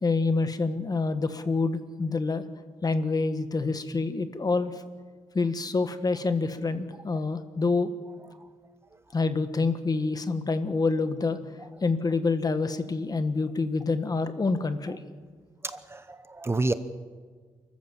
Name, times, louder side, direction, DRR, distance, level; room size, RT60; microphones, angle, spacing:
voice 1, 0.0-2.4 2.8-4.7 5.3-7.9 9.1-11.4 11.8-15.0, left 3 dB, 35° left, 10 dB, 1.4 m, -27 dB
voice 2, 15.6-16.7, right 2 dB, 20° right, 12 dB, 0.9 m, -29 dB
29.5 x 14.0 x 7.4 m, 1.5 s
cardioid pair, 110°, 12 cm